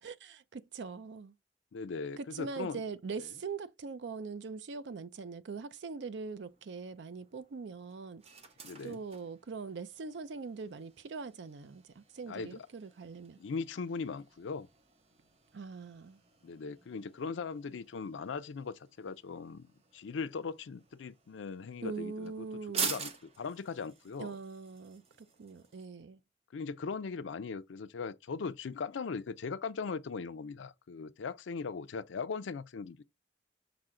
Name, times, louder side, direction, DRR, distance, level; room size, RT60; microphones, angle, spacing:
voice 1, 0.0-1.3 2.2-8.2 8.8-13.4 15.5-16.2 21.8-23.0 24.2-25.0 25.4-26.2, right 4 dB, 70° right, 0.5 m, -42 dB
voice 2, 1.7-2.8 8.6-9.0 12.3-12.6 13.4-14.7 16.4-19.7 19.9-22.3 22.8-23.1 23.4-24.4 26.5-33.0, left 5 dB, 85° left, 0.4 m, -39 dB
sound 1, 6.3-25.9, right 5 dB, 35° right, 0.7 m, -47 dB
5.9 x 2.1 x 3.7 m
head